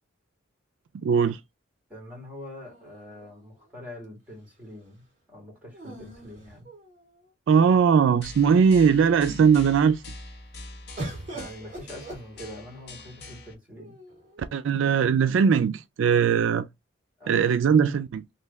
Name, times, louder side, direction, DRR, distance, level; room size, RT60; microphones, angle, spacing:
voice 1, 1.0-1.4 7.5-10.0 14.5-16.7 17.3-18.2, right 6 dB, 70° right, 0.3 m, -20 dB
voice 2, 1.9-6.7 11.3-14.0 17.2-17.5, left 1 dB, 10° right, 1.9 m, -43 dB
sound 1, 2.6-3.8 5.7-7.3 8.0-8.1 8.4-9.0 11.0-12.8 13.8-14.5, right 2 dB, 40° right, 1.8 m, -42 dB
sound 2, 8.2-13.5, left 2 dB, 55° left, 0.9 m, -44 dB
3.2 x 2.6 x 3.3 m
head